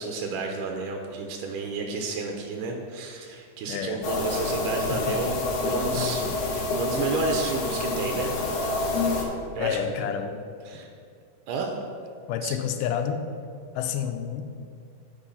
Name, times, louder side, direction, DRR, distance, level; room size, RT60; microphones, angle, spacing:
voice 1, 0.0-8.4 9.0-9.1 9.6-10.1 10.7-10.9 11.5-11.7 12.4-12.6, right 4 dB, 85° right, 2 dB, 2.3 m, -31 dB
voice 2, 3.7-4.0 4.9-5.2 5.9-6.4 9.6-10.4 12.3-13.2 13.8-14.4, left 8 dB, 80° left, 6 dB, 2.1 m, -29 dB
sound 1, 4.0-9.2, left 3 dB, 60° left, 1.8 m, -27 dB
8.9 x 5.3 x 5.6 m, 2.3 s
omnidirectional pair, 3.8 m